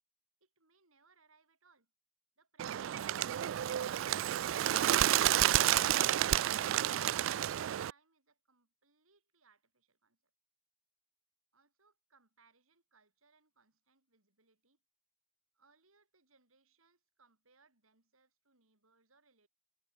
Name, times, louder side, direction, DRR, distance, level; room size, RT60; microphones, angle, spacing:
voice 1, 0.4-1.9 2.4-3.5 5.1-10.2 11.5-14.8 15.5-19.5, right 4 dB, 85° right, 7.9 m, -71 dB
Bird, 2.6-7.9, right 12 dB, 70° right, 0.3 m, -30 dB
head